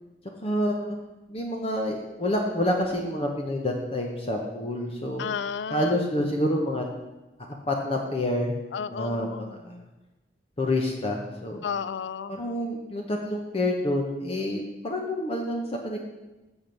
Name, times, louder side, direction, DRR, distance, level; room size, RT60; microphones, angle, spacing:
voice 1, 0.4-1.0 1.3-5.2 5.7-6.8 7.7-8.6 8.9-9.8 10.6-11.7 12.3-16.0, left 1 dB, 35° left, 1 dB, 0.8 m, -28 dB
voice 2, 5.2-6.0 8.7-9.6 11.6-12.3, left 6 dB, 90° left, 15 dB, 0.4 m, -32 dB
7.1 x 6.1 x 5.2 m, 1.1 s
head